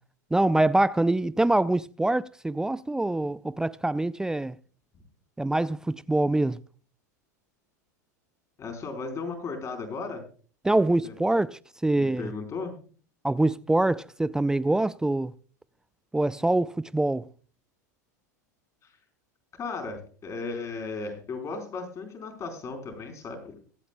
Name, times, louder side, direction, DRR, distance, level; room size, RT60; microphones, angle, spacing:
voice 1, 0.3-4.6 5.4-6.6 10.6-12.3 13.2-15.3 16.1-17.3, right 2 dB, 5° right, 0.4 m, -25 dB
voice 2, 8.6-10.2 11.0-11.1 11.9-12.8 19.5-23.6, left 4 dB, 35° left, 4.2 m, -35 dB
23.5 x 8.5 x 2.2 m
hypercardioid pair, 90°, 9 cm